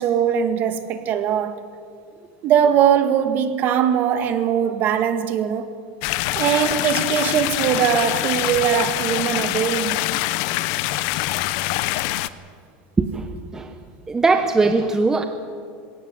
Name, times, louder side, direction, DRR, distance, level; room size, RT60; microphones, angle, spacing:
voice 1, 0.0-1.6 2.4-5.7 6.4-10.0, right 9 dB, 40° right, 1.7 m, -20 dB
sound 1, 6.0-12.3, left 17 dB, 60° left, 0.8 m, -24 dB
voice 2, 14.1-15.2, right 3 dB, 10° right, 0.9 m, -19 dB
20.5 x 17.0 x 9.0 m
supercardioid pair, 155°, 5 cm